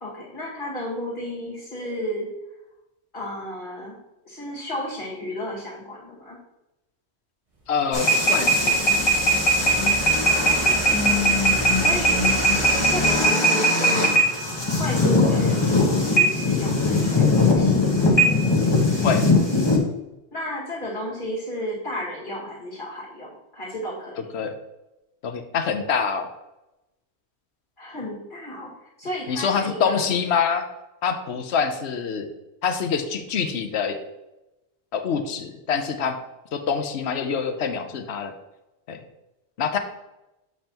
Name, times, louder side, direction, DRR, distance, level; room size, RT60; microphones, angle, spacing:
voice 1, 0.0-2.4 3.1-4.0 4.3-6.4 10.2-12.2 12.6-14.1 14.7-17.9 20.3-24.3 27.8-30.1, equal, 45° left, -5 dB, 2.1 m, -33 dB
voice 2, 7.7-8.8 19.0-19.2 24.3-24.5 25.2-26.3 29.3-30.6 31.0-32.3 32.6-34.0 34.9-36.2 36.5-38.3 38.9-39.0 39.6-39.8, left 6 dB, 70° left, 7 dB, 0.9 m, -25 dB
sound 1, 7.7-13.2, right 3 dB, 30° right, 1.2 m, -36 dB
sound 2, 7.9-19.8, left 1 dB, 25° left, 1.2 m, -20 dB
7.4 x 5.4 x 2.9 m, 0.95 s
omnidirectional pair, 1.2 m